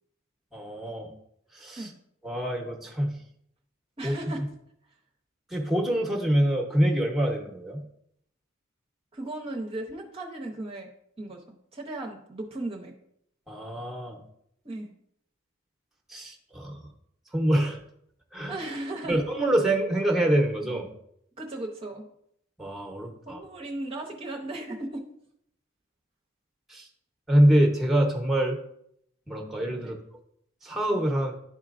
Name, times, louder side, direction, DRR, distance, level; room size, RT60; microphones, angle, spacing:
voice 1, 0.5-1.1 1.5-1.9 2.2-3.2 4.0-4.1 5.5-7.8 13.5-14.2 16.1-16.9 17.3-17.8 18.3-18.6 19.1-20.9 22.6-23.4 26.7-26.9 27.3-28.6 29.3-29.9 30.6-31.3, right 1 dB, ahead, 1 dB, 0.9 m, -25 dB
voice 2, 4.0-4.4 9.1-10.9 11.2-12.9 14.6-14.9 18.5-19.2 21.4-22.1 23.3-25.1 29.8-30.0, right 2 dB, 30° right, 1 dB, 0.7 m, -36 dB
11.0 x 4.4 x 2.5 m, 0.74 s
head